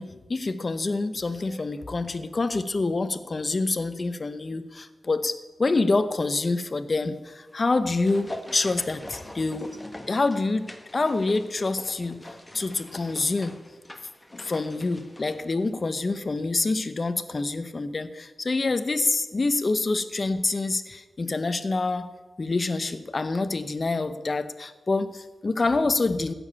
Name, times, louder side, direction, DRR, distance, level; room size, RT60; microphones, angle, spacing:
voice 1, 0.0-9.7 10.1-12.2 12.5-13.6 14.3-22.1 22.4-26.3, left 3 dB, 40° left, 11 dB, 0.8 m, -26 dB
sound 1, 7.5-16.1 16.4-16.5, left 1 dB, 15° left, 1.2 m, -43 dB
15.5 x 7.0 x 8.4 m, 1.2 s
wide cardioid pair, 120°, 0 cm